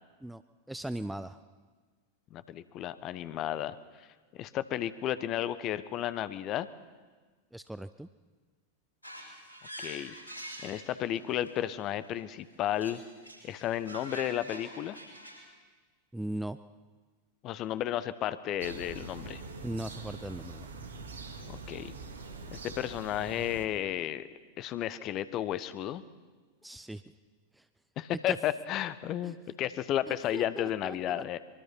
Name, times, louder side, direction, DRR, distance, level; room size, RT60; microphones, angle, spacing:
voice 1, 0.7-1.4 7.5-8.1 16.1-16.6 19.6-20.7 26.6-27.0 28.3-28.4 29.2-29.3 30.1-31.2, right 1 dB, 5° right, 13 dB, 0.6 m, -38 dB
voice 2, 2.3-3.8 4.3-6.7 9.8-10.1 10.6-13.0 13.4-15.0 17.4-19.4 21.5-21.9 22.5-24.3 24.6-26.0 28.0-31.4, left 11 dB, 35° left, 15 dB, 1.1 m, -33 dB
sound 1, 9.0-11.5 12.7-15.4, right 1 dB, 85° left, 6.6 m, -45 dB
sound 2, 18.6-23.7, right 3 dB, 65° right, 2.5 m, -44 dB
24.0 x 23.5 x 5.8 m, 1.4 s
figure-of-eight pair, 90°, 0 cm